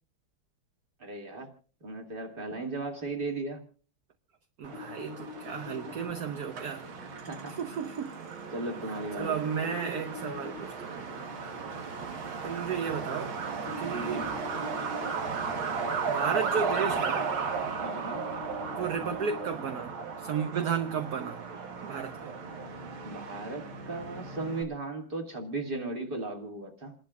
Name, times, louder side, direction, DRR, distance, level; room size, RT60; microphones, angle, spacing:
voice 1, 1.0-1.5 1.8-3.6 7.3-7.5 8.5-9.4 13.9-14.3 17.8-18.2 23.0-26.9, right 2 dB, 25° right, 2.2 m, -36 dB
voice 2, 4.6-6.9 7.5-8.2 9.1-11.3 12.4-13.3 13.8-14.3 16.1-17.3 18.8-21.4 21.8-22.3, right 7 dB, 55° right, 1.2 m, -33 dB
Truck, 4.6-24.6, right 5 dB, 75° right, 2.3 m, -35 dB
sound 1, 4.7-6.1 9.2-10.6 13.7-15.1 18.2-19.5, left 8 dB, 50° left, 1.8 m, -44 dB
29.0 x 11.5 x 2.4 m
omnidirectional pair, 2.3 m